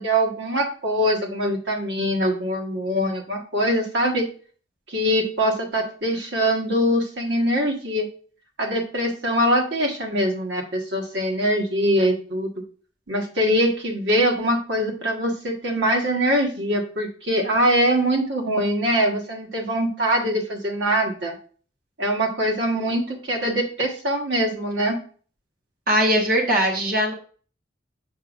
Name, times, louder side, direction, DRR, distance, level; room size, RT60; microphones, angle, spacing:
voice 1, 0.0-4.3 4.9-8.1 8.6-12.6 13.1-21.3 22.0-25.0, equal, 85° right, 2 dB, 1.5 m, -23 dB
voice 2, 25.9-27.1, equal, 55° right, 1 dB, 1.1 m, -20 dB
7.0 x 6.1 x 2.5 m, 0.41 s
head